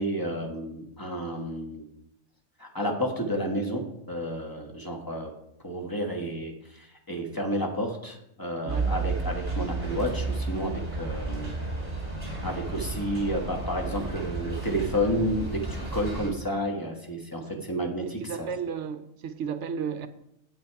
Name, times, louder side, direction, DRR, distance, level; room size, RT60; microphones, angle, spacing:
voice 1, 0.0-1.8 2.6-5.3 5.6-11.6 12.4-18.5, equal, 15° left, 1.3 m, -31 dB
sound 1, 8.7-16.3, right 3 dB, 30° right, 2.7 m, -32 dB
voice 2, 18.3-20.1, right 7 dB, 65° right, 0.9 m, -33 dB
8.3 x 8.1 x 4.7 m
omnidirectional pair, 1.4 m